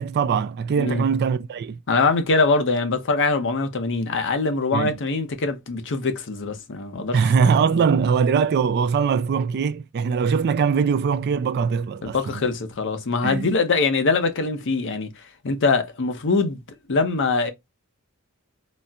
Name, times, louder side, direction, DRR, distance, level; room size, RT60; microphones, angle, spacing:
voice 1, 0.0-1.8 4.7-4.9 7.1-12.3 13.2-13.5, right 6 dB, 45° right, 0.3 m, -21 dB
voice 2, 1.9-7.5 7.7-7.8 12.1-16.6 16.9-17.5, left 3 dB, 55° left, 0.7 m, -23 dB
4.0 x 2.1 x 2.3 m
head